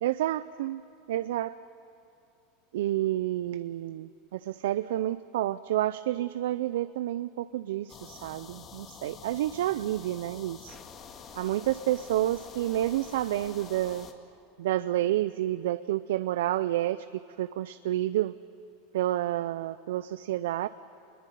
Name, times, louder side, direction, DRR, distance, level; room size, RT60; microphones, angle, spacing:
voice 1, 0.0-0.8 1.1-1.5 2.7-10.8 11.4-14.1 14.6-17.1 17.4-18.3 18.9-20.7, right 13 dB, 80° right, 14 dB, 0.5 m, -29 dB
sound 1, 7.9-14.1, left 6 dB, 35° left, 2.2 m, -47 dB
25.0 x 21.5 x 9.3 m, 2.7 s
supercardioid pair, 120°, 0 cm